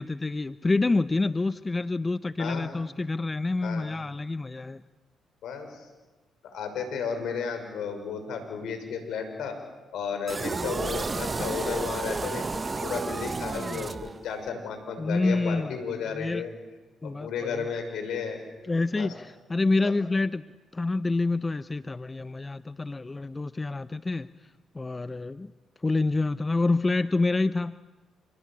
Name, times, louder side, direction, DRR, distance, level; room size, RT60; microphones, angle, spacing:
voice 1, 0.0-4.8 15.0-15.7 16.1-16.4 17.0-17.6 18.7-20.4 20.7-24.3 24.7-25.5 25.8-27.8, left 3 dB, 25° left, 14 dB, 0.8 m, -27 dB
voice 2, 2.4-2.7 3.6-3.9 5.4-5.9 6.4-9.6 9.9-12.5 12.8-16.5 17.0-19.1 19.8-19.9, left 6 dB, 70° left, 6 dB, 6.1 m, -33 dB
sound 1, 10.3-14.5, right 3 dB, 35° right, 1.2 m, -32 dB
28.5 x 21.5 x 8.9 m, 1.2 s
hypercardioid pair, 50°, 0 cm